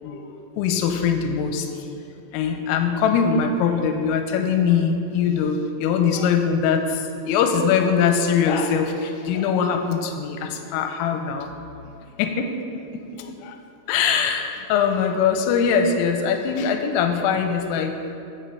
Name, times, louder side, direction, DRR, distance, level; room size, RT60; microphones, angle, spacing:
voice 1, 0.6-1.8 2.3-11.5 12.2-12.5 12.9-13.6 13.9-17.9, left 6 dB, 90° left, 5 dB, 3.2 m, -22 dB
9.1 x 7.2 x 5.5 m, 2.7 s
omnidirectional pair, 5.8 m